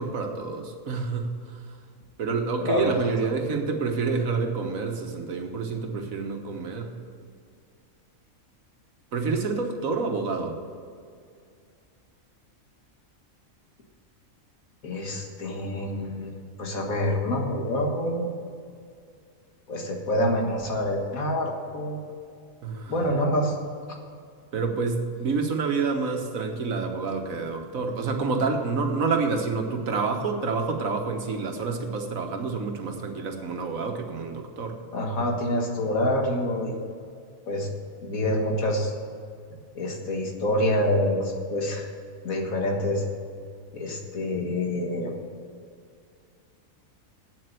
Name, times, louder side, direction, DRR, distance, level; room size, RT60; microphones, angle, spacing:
voice 1, 0.0-1.6 2.2-6.9 9.1-10.6 22.6-22.9 24.5-34.8, right 4 dB, 75° right, 4 dB, 1.6 m, -28 dB
voice 2, 2.6-2.9 14.8-18.3 19.7-22.0 22.9-23.5 34.9-36.8 37.5-37.7 38.0-38.9 39.8-41.9 42.2-43.0 43.7-45.2, left 1 dB, 80° left, 1 dB, 2.1 m, -26 dB
8.7 x 7.7 x 8.2 m, 2.3 s
omnidirectional pair, 1.4 m